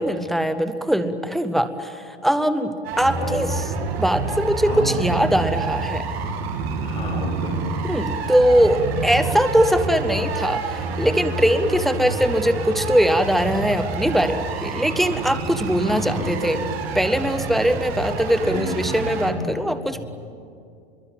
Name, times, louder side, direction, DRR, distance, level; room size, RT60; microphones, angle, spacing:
voice 1, 0.0-3.6 4.0-6.0 7.9-16.6 16.9-20.0, equal, ahead, 10 dB, 0.6 m, -21 dB
sound 1, 2.8-19.3, right 4 dB, 65° right, 3.1 m, -28 dB
voice 2, 6.8-7.6 15.8-16.7 18.4-18.6 18.9-19.4 19.9-20.1, left 2 dB, 15° left, -1 dB, 7.3 m, -32 dB
25.5 x 22.5 x 9.1 m, 2.4 s
supercardioid pair, 155°, 33 cm